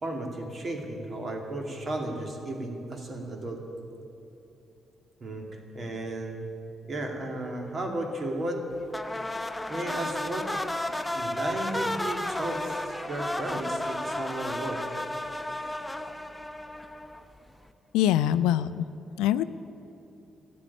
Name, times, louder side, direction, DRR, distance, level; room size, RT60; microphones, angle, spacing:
voice 1, 0.0-3.6 5.2-6.5 6.9-8.7 9.7-10.6 10.9-14.9, right 1 dB, 50° right, 2 dB, 2.6 m, -34 dB
sound 1, 8.9-17.4, left 1 dB, 10° left, 1.0 m, -33 dB
voice 2, 17.9-18.8 19.2-19.4, left 11 dB, 75° left, 15 dB, 0.4 m, -23 dB
13.0 x 9.5 x 10.0 m, 2.9 s
hypercardioid pair, 40°, 0 cm